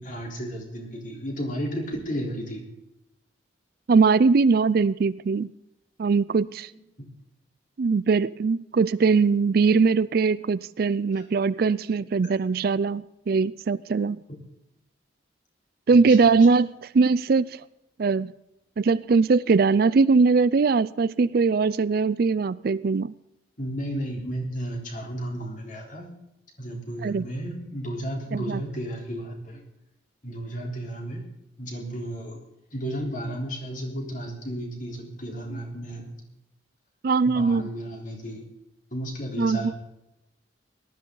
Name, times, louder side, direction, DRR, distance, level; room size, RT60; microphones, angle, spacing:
voice 1, 0.0-2.6 7.0-7.1 11.1-11.2 14.3-14.4 16.1-16.3 23.6-26.1 26.6-29.6 30.2-31.3 31.6-32.4 32.7-36.1 37.3-38.5 38.9-39.7, right 1 dB, 40° left, 0 dB, 3.8 m, -33 dB
voice 2, 3.9-5.5 6.0-6.7 7.8-14.2 15.9-17.6 18.0-18.3 18.8-23.1 27.0-27.3 28.3-28.6 37.0-37.6 39.4-39.7, right 4 dB, 50° right, 18 dB, 0.4 m, -21 dB
18.5 x 12.5 x 3.9 m, 0.87 s
head